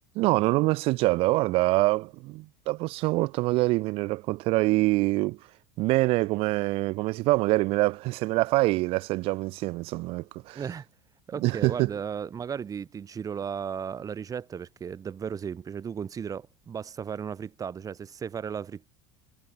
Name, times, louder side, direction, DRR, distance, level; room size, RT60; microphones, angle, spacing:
voice 1, 0.2-5.4 5.8-10.6 11.4-11.9, right 21 dB, 50° right, 0.6 m, -25 dB
voice 2, 10.5-10.9 11.3-18.9, right 7 dB, 30° right, 2.1 m, -35 dB
hypercardioid pair, 80°, 12 cm